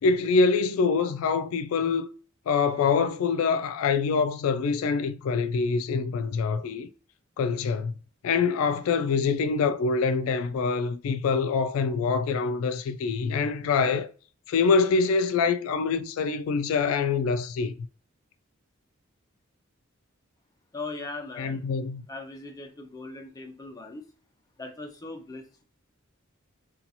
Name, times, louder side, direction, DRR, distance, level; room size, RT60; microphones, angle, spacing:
voice 1, 0.0-2.1 2.5-6.9 7.4-7.9 8.2-14.1 14.5-17.7 21.4-22.1, left 5 dB, 80° left, 0.3 m, -25 dB
voice 2, 20.7-21.6 22.1-24.0 24.6-25.6, left 3 dB, 15° left, 0.5 m, -39 dB
2.8 x 2.3 x 2.6 m
head